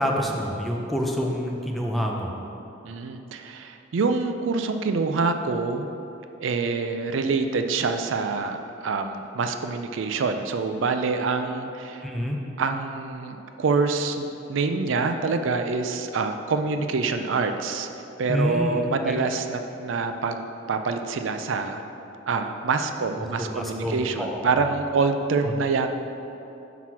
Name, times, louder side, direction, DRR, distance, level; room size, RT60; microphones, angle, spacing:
voice 1, 0.0-2.4 12.0-12.4 18.3-19.2 23.0-24.7, equal, ahead, -1 dB, 0.6 m, -28 dB
voice 2, 2.8-5.9 6.4-12.0 12.6-17.9 18.2-21.8 22.3-25.9, right 4 dB, 80° right, 7 dB, 0.4 m, -26 dB
5.9 x 5.8 x 4.6 m, 2.8 s
head